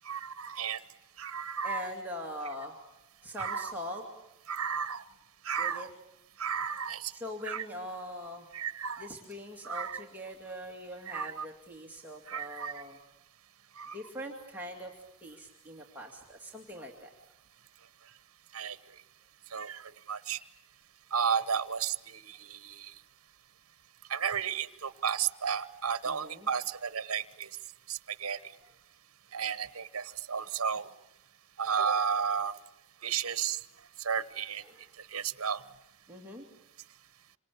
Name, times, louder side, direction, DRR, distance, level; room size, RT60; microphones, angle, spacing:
voice 1, 0.1-0.8 1.2-1.9 3.4-3.7 4.5-5.0 5.4-5.9 6.4-7.1 7.4-7.6 8.5-9.1 9.6-10.0 11.1-11.4 12.3-12.8 13.8-13.9 18.5-18.8 19.5-19.8 20.1-20.4 21.1-22.6 24.1-27.5 27.9-28.4 29.3-30.9 31.6-32.5 33.0-33.6 34.0-34.6 35.1-35.6, right 7 dB, 75° right, 15 dB, 1.0 m, -33 dB
voice 2, 1.6-2.7 3.2-4.0 5.6-5.9 7.1-8.4 9.0-13.0 13.9-14.9 15.2-17.1 26.1-26.5 34.6-34.8 36.1-36.4, equal, 10° right, -1 dB, 2.4 m, -42 dB
27.0 x 26.0 x 8.5 m, 0.87 s
head